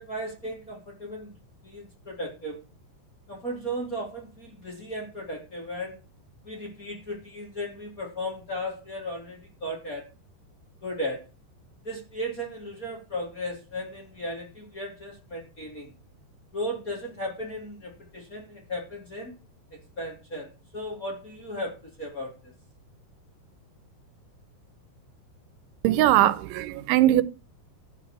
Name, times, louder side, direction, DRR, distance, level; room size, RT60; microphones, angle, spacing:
voice 1, 0.0-1.4 1.6-2.6 3.3-6.0 6.4-10.0 10.8-11.2 11.8-15.9 16.5-19.4 20.0-22.5, equal, 20° left, 2.8 m, -35 dB
voice 2, 25.8-27.2, right 14 dB, 90° right, 3.1 m, -20 dB
13.0 x 5.4 x 8.8 m
omnidirectional pair, 5.2 m